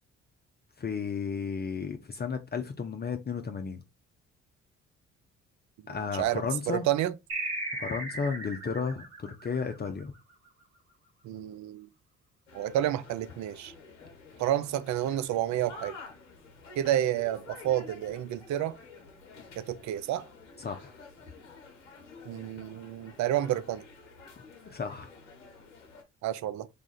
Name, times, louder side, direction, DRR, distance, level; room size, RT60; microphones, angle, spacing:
voice 1, 0.8-3.8 5.9-6.9 7.8-10.1 20.6-21.0 24.7-25.1, left 5 dB, 30° left, 0.6 m, -33 dB
voice 2, 5.9-7.1 11.2-11.9 12.5-13.7 14.4-16.0 16.8-18.8 19.6-20.3 22.3-23.8 26.2-26.7, right 12 dB, 55° right, 0.5 m, -30 dB
sound 1, 7.3-10.3, right 2 dB, 80° right, 1.9 m, -37 dB
sound 2, 12.5-26.0, left 4 dB, 90° left, 0.8 m, -50 dB
3.3 x 2.4 x 3.9 m
hypercardioid pair, 50°, 34 cm